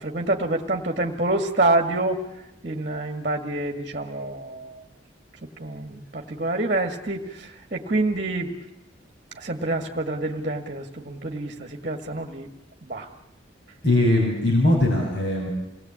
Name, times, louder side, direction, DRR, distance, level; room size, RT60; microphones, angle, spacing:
voice 1, 0.0-2.2 2.6-4.8 5.4-8.5 9.3-12.5 12.8-13.1, right 2 dB, 40° right, 4 dB, 1.9 m, -27 dB
voice 2, 13.8-15.5, left 1 dB, 60° left, -1 dB, 6.6 m, -20 dB
28.5 x 20.0 x 8.8 m, 0.92 s
head